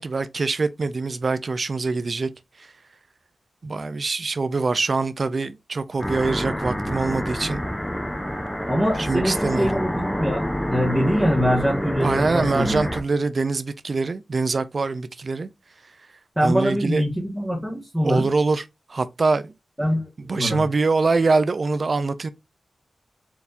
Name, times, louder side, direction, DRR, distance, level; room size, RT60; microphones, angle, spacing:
voice 1, 0.0-2.3 2.6-2.7 3.6-7.6 9.0-9.8 12.0-15.5 16.4-17.1 18.0-18.6 18.9-19.5 20.3-22.3, right 3 dB, 45° right, 0.4 m, -24 dB
sound 1, 6.0-13.0, equal, 5° left, 0.7 m, -27 dB
voice 2, 8.7-12.8 16.4-18.2 19.8-20.6, equal, 10° right, 1.4 m, -23 dB
4.5 x 3.5 x 2.5 m
wide cardioid pair, 90°, 0 cm